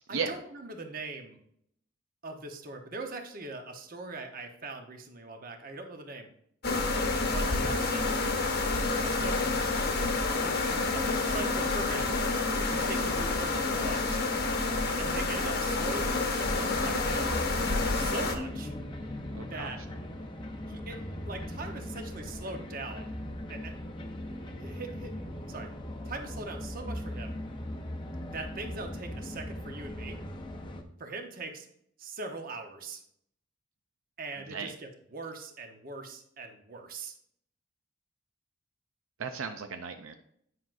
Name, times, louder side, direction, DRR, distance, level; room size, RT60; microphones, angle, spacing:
voice 1, 0.1-1.4 2.2-6.3 7.2-8.1 9.1-9.5 10.4-12.1 12.6-14.2 15.0-17.4 17.9-18.7 19.5-19.8 20.7-21.0 21.2-23.1 23.5-23.7 24.6-25.1 25.5-25.7 26.0-27.4 28.3-30.2 31.0-31.7 32.0-33.0 34.2-37.1, right 3 dB, 45° right, 4 dB, 0.9 m, -41 dB
sound 1, 6.6-18.4, left 3 dB, 50° left, 1.0 m, -29 dB
sound 2, 16.4-30.8, left 1 dB, 25° left, 0.7 m, -39 dB
voice 2, 19.3-19.7 34.4-34.7 39.2-40.1, right 5 dB, 80° right, 6 dB, 0.5 m, -35 dB
9.6 x 5.9 x 2.6 m, 0.68 s
head